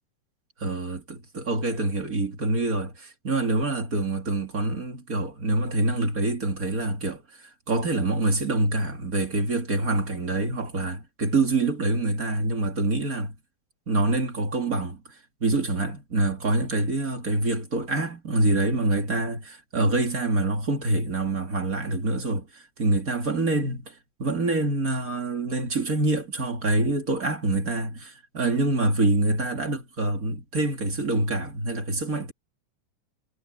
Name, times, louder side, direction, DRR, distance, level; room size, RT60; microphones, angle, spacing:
voice 1, 0.6-7.2 7.7-13.3 13.9-15.0 15.4-23.9 24.2-32.3, right 2 dB, 30° right, 2.5 m, -26 dB
omnidirectional pair, 3.4 m